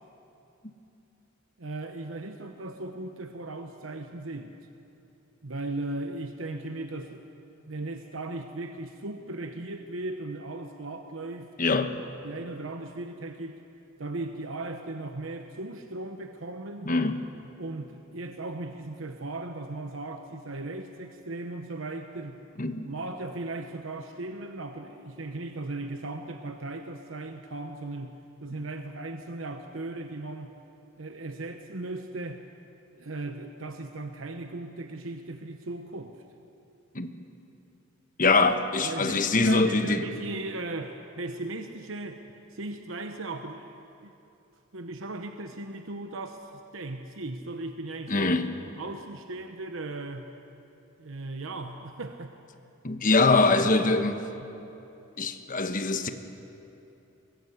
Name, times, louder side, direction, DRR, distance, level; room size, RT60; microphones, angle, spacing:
voice 1, 1.6-4.6 5.4-7.3 7.7-11.5 12.2-13.6 14.0-16.9 17.6-22.4 22.8-28.1 28.4-30.5 31.0-32.4 32.9-36.2 38.8-42.2 42.5-44.1 44.7-48.3 48.8-50.3 51.0-52.3, right 2 dB, 70° right, 1.1 m, -37 dB
voice 2, 11.6-11.9 16.8-17.2 22.6-22.9 36.9-37.1 38.2-40.0 48.1-48.5 52.8-54.2 55.2-56.1, left 3 dB, 40° left, 1.2 m, -23 dB
23.5 x 21.5 x 8.0 m
head